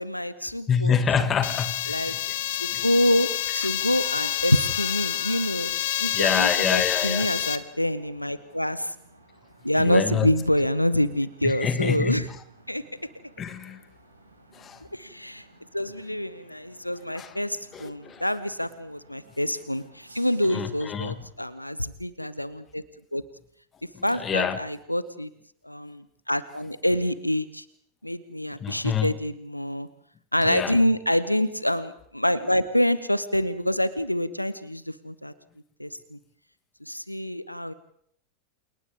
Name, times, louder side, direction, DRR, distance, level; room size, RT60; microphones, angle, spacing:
voice 1, 0.0-0.9 1.9-2.1 2.6-8.9 9.6-12.2 12.7-12.8 14.9-15.4 15.7-22.8 23.1-23.2 24.0-25.3 25.6-27.6 28.0-29.9 30.3-35.3 35.8-36.2 36.9-37.7, left 1 dB, 90° left, 0.9 m, -26 dB
voice 2, 0.7-2.2 2.7-2.8 6.1-7.3 9.8-10.3 11.4-12.3 13.4-13.8 14.5-14.8 17.2-17.3 17.7-18.2 20.4-21.2 23.9-24.6 28.6-29.1 30.4-30.8, left 7 dB, 25° left, 2.2 m, -27 dB
Electrical Noise High Tone, 1.4-7.6, left 13 dB, 55° left, 1.6 m, -28 dB
sound 1, 2.0-21.3, right 2 dB, 80° right, 6.0 m, -52 dB
29.5 x 28.5 x 3.7 m
figure-of-eight pair, 90°, 0 cm